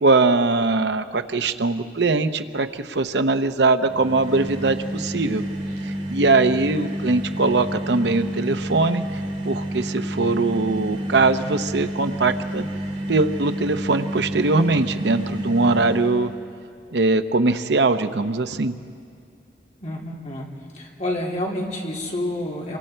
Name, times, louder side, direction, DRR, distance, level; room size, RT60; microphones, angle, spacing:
voice 1, 0.0-5.4 5.8-12.6 13.1-16.3 16.9-18.7, right 3 dB, 70° right, 10 dB, 0.7 m, -21 dB
sound 1, 3.8-16.4, right 1 dB, 40° right, 2.6 m, -30 dB
voice 2, 19.8-20.4 20.7-22.8, left 1 dB, 40° left, -3 dB, 3.5 m, -28 dB
28.0 x 24.0 x 4.5 m, 2.3 s
head